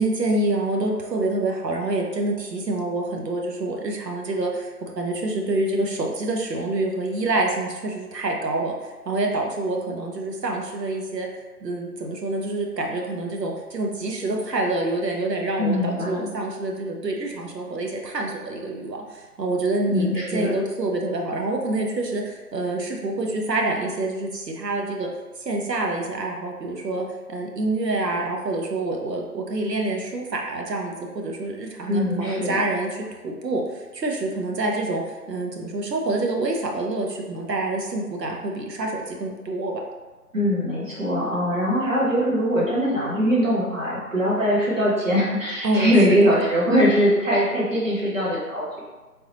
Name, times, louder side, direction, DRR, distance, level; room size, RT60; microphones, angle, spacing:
voice 1, 0.0-8.7 9.1-11.3 11.6-25.1 25.4-39.8 45.6-46.3, right 2 dB, 85° right, 0 dB, 0.9 m, -27 dB
voice 2, 15.6-16.3 19.9-20.5 31.9-32.6 40.3-48.8, equal, 50° right, -6 dB, 1.2 m, -22 dB
3.8 x 2.8 x 2.8 m, 1.2 s
figure-of-eight pair, 165°, 48 cm